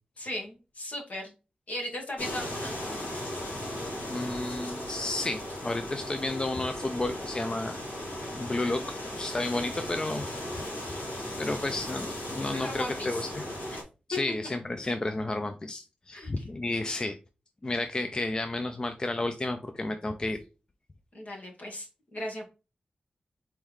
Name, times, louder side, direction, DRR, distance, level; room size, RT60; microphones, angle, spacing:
voice 1, 0.2-1.3 1.7-2.8 12.5-13.3 13.7-13.8 14.1-14.2 16.1-16.4 21.1-22.4, left 1 dB, 60° left, 0 dB, 1.7 m, -37 dB
sound 1, 2.2-13.8, left 1 dB, 90° left, 2.0 m, -37 dB
voice 2, 4.1-7.7 8.3-8.8 9.2-10.4 11.4-13.3 14.1-17.2 17.6-20.4, left 2 dB, 30° left, 8 dB, 0.4 m, -32 dB
4.4 x 3.6 x 3.1 m, 0.31 s
wide cardioid pair, 75°, 3 cm